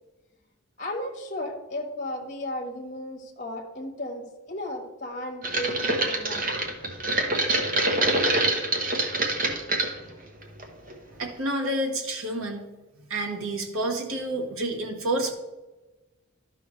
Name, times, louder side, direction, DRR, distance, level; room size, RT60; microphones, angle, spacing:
voice 1, 0.8-6.4, left 1 dB, 35° left, 0 dB, 1.3 m, -34 dB
sound 1, 5.4-9.9 10.4-10.9 11.2-11.3, right 2 dB, 40° right, 1.0 m, -25 dB
voice 2, 11.2-12.6 13.1-15.3, right 1 dB, 65° right, 2 dB, 1.3 m, -29 dB
12.0 x 5.6 x 3.2 m, 1.1 s
head